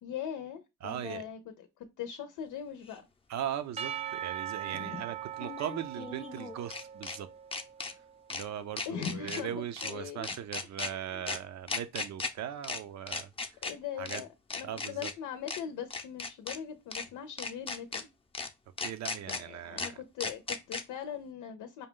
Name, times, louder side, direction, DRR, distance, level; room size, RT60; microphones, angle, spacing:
voice 1, 0.0-3.1 4.7-5.0 8.9-10.3 10.9-11.2 13.6-14.3 14.5-18.1 19.3-21.9, left 8 dB, 90° left, 0.7 m, -40 dB
voice 2, 0.8-1.3 3.3-7.3 7.9-8.0 8.3-13.7 14.0-14.2 14.6-15.1 18.8-20.0, right 10 dB, 65° right, 0.6 m, -39 dB
sound 1, 2.9-3.0 5.3-7.2 7.5-7.9 8.3-8.4 8.8-9.4 9.8-9.9 10.2-10.9 11.3-11.4 11.7-12.3 12.6-12.8 13.1-13.7 14.1-14.2 14.5-15.1 15.5-15.6 15.9-16.6 16.9-17.1 17.4-18.0 18.3-18.5 18.8-19.4 19.8-19.9 20.2-20.8, left 3 dB, 20° left, 0.6 m, -36 dB
Percussion / Church bell, 3.8-8.1, right 10 dB, 20° right, 0.4 m, -40 dB
5.2 x 2.3 x 3.7 m
cardioid pair, 90°, 30 cm